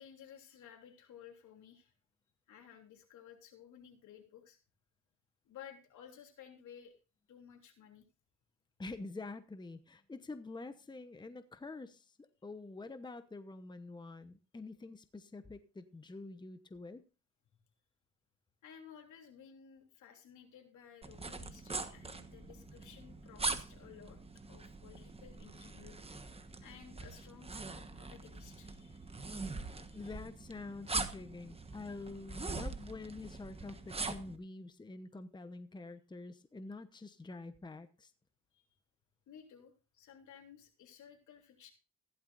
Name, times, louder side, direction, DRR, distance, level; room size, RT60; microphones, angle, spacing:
voice 1, 0.0-1.9 2.5-4.6 5.4-6.9 7.3-8.1 18.6-24.2 24.5-26.0 26.6-29.1 29.7-30.2 38.5-38.6 39.3-41.7, left 8 dB, 75° left, 3 dB, 3.2 m, -56 dB
voice 2, 8.8-17.0 29.9-38.1, left 3 dB, 15° left, 10 dB, 0.9 m, -47 dB
sound 1, 21.0-34.4, right 3 dB, 20° right, 1.3 m, -42 dB
15.5 x 11.5 x 2.6 m, 0.32 s
cardioid pair, 90°, 30 cm